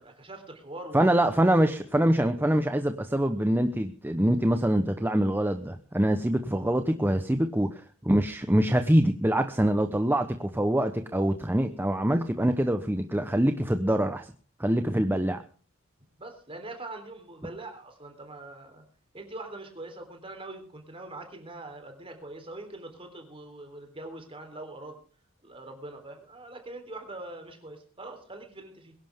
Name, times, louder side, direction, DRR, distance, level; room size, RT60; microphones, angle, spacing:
voice 1, 0.0-1.3 16.2-18.8 19.1-25.0 25.4-28.9, right 2 dB, 25° right, 5 dB, 3.6 m, -43 dB
voice 2, 0.9-14.3 14.6-15.4, right 1 dB, 10° right, 7 dB, 0.9 m, -24 dB
22.5 x 11.5 x 3.6 m, 0.41 s
head